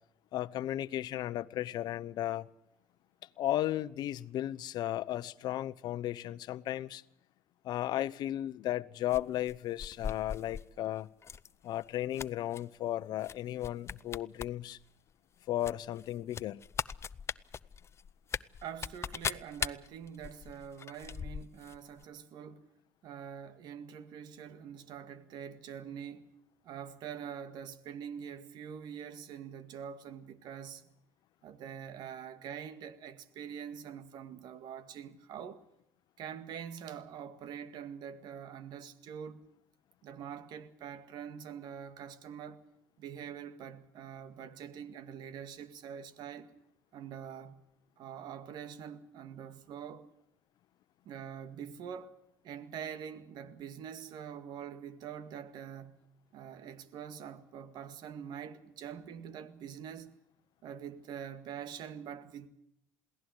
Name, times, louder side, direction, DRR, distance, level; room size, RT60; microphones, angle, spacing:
voice 1, 0.3-2.5 3.4-7.0 7.6-11.1 11.6-14.8 15.5-16.6, left 13 dB, 65° left, 1.0 m, -35 dB
sound 1, 9.1-10.7 11.2-11.5 11.8-12.6 13.2-13.4 13.6-14.5 14.8-14.9 15.6-21.8 22.0-22.1, left 6 dB, 35° left, 0.7 m, -39 dB
voice 2, 18.6-22.6 23.0-26.3 26.6-30.9 31.4-35.6 36.2-39.4 40.0-42.6 43.0-46.5 46.9-47.6 48.0-50.1 51.1-56.0 56.3-60.1 60.6-62.5, right 8 dB, 65° right, 1.9 m, -45 dB
22.0 x 17.0 x 8.0 m
supercardioid pair, 80°, 8 cm